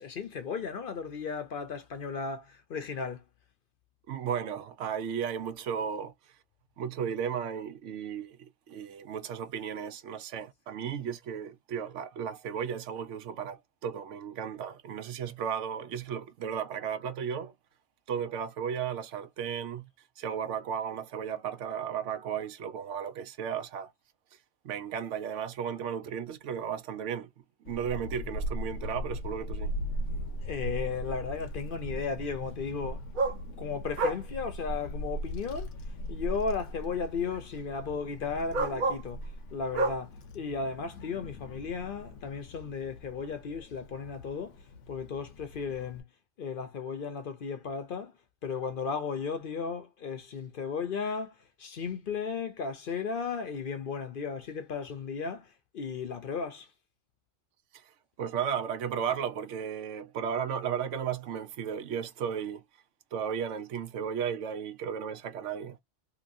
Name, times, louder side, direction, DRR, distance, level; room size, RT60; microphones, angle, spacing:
voice 1, 0.0-3.2 30.4-33.0 33.6-35.7 36.1-39.2 39.5-44.6 44.9-46.0 46.4-48.1 48.4-56.7, left 5 dB, 55° left, 0.7 m, -35 dB
voice 2, 4.1-6.1 6.8-17.5 18.1-19.9 20.2-23.9 24.6-27.3 27.6-29.7 57.7-57.9 58.2-62.6 63.1-65.8, right 8 dB, 80° right, 1.0 m, -34 dB
Child speech kid speaking / Wind, 27.6-46.0, equal, 85° left, 1.1 m, -39 dB
sound 1, 30.4-30.5 33.1-33.4 34.0-34.2 35.4-35.5 37.3-37.4 38.5-39.1 39.7-40.0 42.1-42.2, right 3 dB, 50° right, 0.7 m, -29 dB
2.9 x 2.9 x 2.6 m
omnidirectional pair, 1.2 m